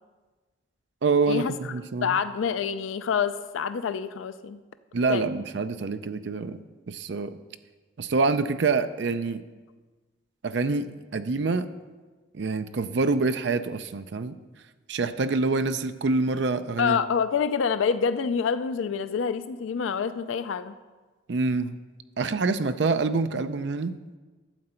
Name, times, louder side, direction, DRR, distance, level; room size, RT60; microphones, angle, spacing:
voice 1, 1.0-2.2 4.9-6.6 6.9-7.4 8.0-9.4 10.4-11.7 12.3-14.4 14.9-17.0 21.3-21.8 22.2-23.9, right 3 dB, 65° right, 11 dB, 0.5 m, -26 dB
voice 2, 2.0-4.6 5.1-5.3 16.8-20.7, left 6 dB, 90° left, 12 dB, 0.4 m, -27 dB
12.0 x 7.8 x 4.4 m, 1.3 s
head